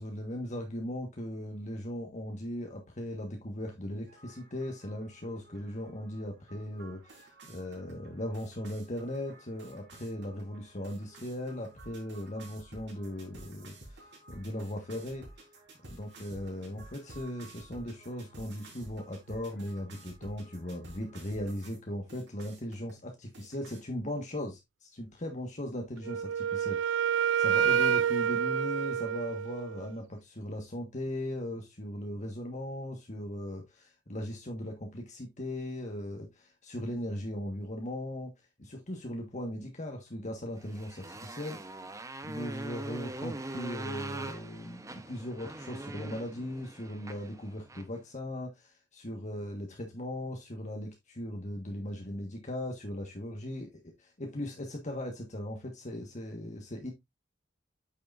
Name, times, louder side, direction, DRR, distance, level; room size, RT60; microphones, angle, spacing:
voice 1, 0.0-15.3 15.9-38.3 38.6-41.6 42.2-56.9, left 1 dB, 40° left, 1.5 m, -38 dB
sound 1, 4.1-21.8 22.1-22.9 23.3-23.8, right 2 dB, 70° right, 3.9 m, -53 dB
Wind instrument woodwind instrument, 26.0-29.9, right 8 dB, 90° right, 0.4 m, -28 dB
Motorcycle, 40.6-48.0, right 2 dB, 15° right, 0.9 m, -42 dB
8.7 x 6.7 x 2.5 m
head